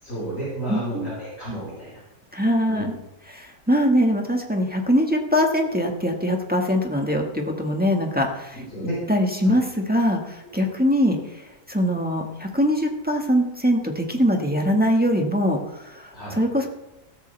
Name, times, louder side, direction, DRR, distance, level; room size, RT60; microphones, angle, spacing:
voice 1, 0.0-2.0 2.7-2.9 8.5-9.0 9.4-9.5 16.1-16.4, right 1 dB, 50° left, -8 dB, 5.3 m, -32 dB
voice 2, 0.7-1.1 2.3-2.9 3.3-8.6 9.1-16.7, equal, 5° right, 1 dB, 1.5 m, -22 dB
15.5 x 14.0 x 3.4 m, 0.95 s
omnidirectional pair, 1.7 m